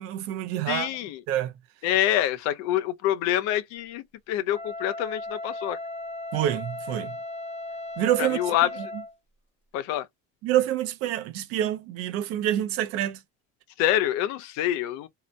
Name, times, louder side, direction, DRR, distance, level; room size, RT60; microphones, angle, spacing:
voice 1, 0.0-0.9 1.3-1.5 6.3-7.2 8.0-8.4 10.4-13.2, right 12 dB, 50° right, 0.5 m, -27 dB
voice 2, 0.7-1.2 1.8-5.8 8.2-8.7 9.7-10.1 13.8-15.1, left 12 dB, 60° left, 0.5 m, -26 dB
Wind instrument woodwind instrument, 4.5-9.1, left 2 dB, 20° left, 0.8 m, -36 dB
2.8 x 2.1 x 2.4 m
cardioid pair, 170°, 30 cm